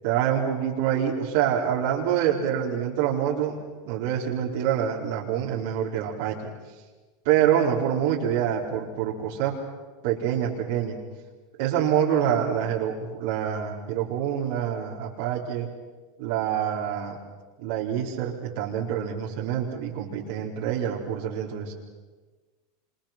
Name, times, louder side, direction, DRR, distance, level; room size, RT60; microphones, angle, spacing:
voice 1, 0.0-3.6 3.8-6.5 7.2-9.5 10.0-11.0 11.6-15.7 16.2-17.2 17.6-21.7, right 9 dB, 65° right, -3 dB, 4.6 m, -26 dB
27.5 x 26.5 x 6.1 m, 1.3 s
hypercardioid pair, 110°, 0 cm